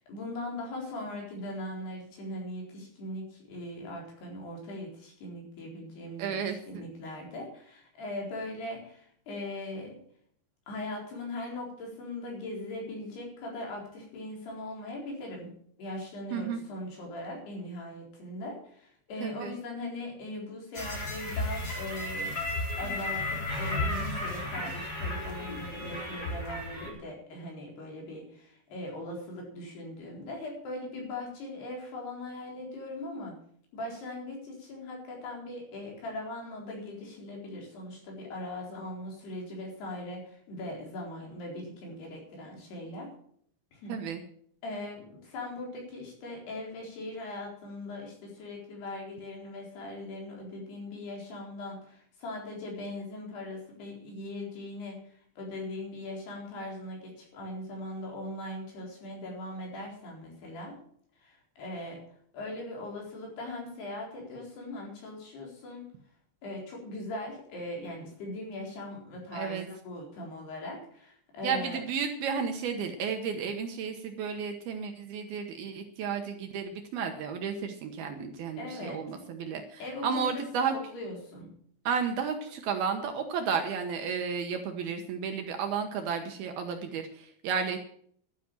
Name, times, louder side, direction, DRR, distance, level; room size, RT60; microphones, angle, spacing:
voice 1, 0.1-6.4 6.7-10.0 10.7-15.5 15.8-22.3 22.8-33.4 33.7-43.1 43.7-44.0 44.6-60.8 61.2-62.0 62.3-65.9 66.4-71.8 78.6-79.2 79.8-80.5 80.9-81.5, left 1 dB, 60° left, -1 dB, 6.1 m, -40 dB
voice 2, 6.2-6.8 16.3-16.6 19.2-19.5 43.9-44.2 69.3-69.7 71.4-80.7 81.9-87.8, right 6 dB, 70° right, 5 dB, 2.6 m, -32 dB
sound 1, 20.7-26.9, left 1 dB, 20° left, 4.1 m, -34 dB
12.0 x 10.0 x 7.5 m, 0.63 s
omnidirectional pair, 5.2 m